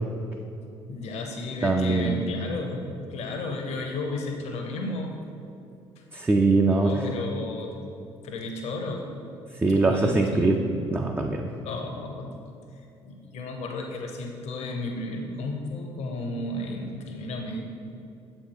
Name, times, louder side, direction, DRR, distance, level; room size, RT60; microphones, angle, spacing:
voice 1, 0.9-2.8 3.1-5.2 6.8-7.7 8.2-9.1 9.8-10.5 11.6-12.3 12.7-17.6, left 2 dB, 50° left, 3 dB, 0.8 m, -33 dB
voice 2, 1.6-2.2 6.1-6.9 9.6-10.5 10.9-11.4, right 3 dB, 15° right, 2 dB, 0.4 m, -22 dB
7.2 x 4.3 x 4.6 m, 2.7 s
figure-of-eight pair, 50°, 14 cm